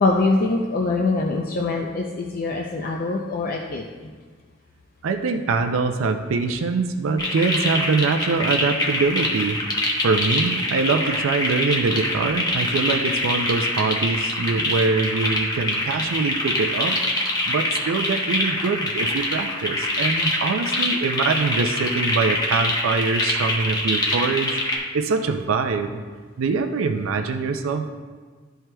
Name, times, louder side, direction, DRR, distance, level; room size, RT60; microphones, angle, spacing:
voice 1, 0.0-4.1, left 3 dB, 45° left, 0 dB, 0.5 m, -23 dB
voice 2, 5.0-9.6 10.0-26.0 26.4-27.9, right 4 dB, 75° right, 6 dB, 0.4 m, -24 dB
sound 1, 7.2-24.8, left 1 dB, 20° left, 1.0 m, -24 dB
12.5 x 4.5 x 2.2 m, 1.5 s
head